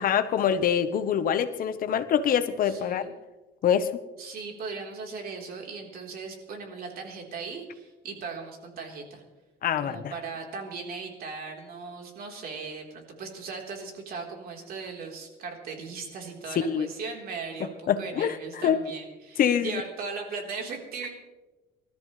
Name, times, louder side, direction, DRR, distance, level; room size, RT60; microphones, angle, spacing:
voice 1, 0.0-3.0 3.6-3.9 9.6-10.0 16.6-16.9 17.9-18.4 18.6-18.8 19.4-19.8, left 8 dB, 55° left, 11 dB, 1.1 m, -24 dB
voice 2, 2.6-3.1 4.2-9.2 9.8-21.1, right 4 dB, 60° right, 1 dB, 3.9 m, -38 dB
25.5 x 13.5 x 3.3 m, 1.1 s
cardioid pair, 110°, 17 cm